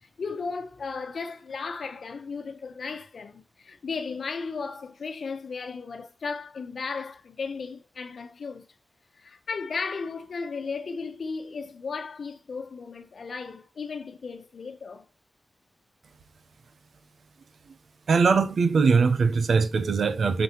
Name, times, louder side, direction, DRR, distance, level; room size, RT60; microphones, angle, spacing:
voice 1, 0.0-8.7 9.1-15.0, left 4 dB, 65° left, 1.1 m, -35 dB
voice 2, 18.1-20.4, right 5 dB, 80° right, 0.9 m, -21 dB
7.8 x 6.3 x 3.1 m
wide cardioid pair, 155°, 0 cm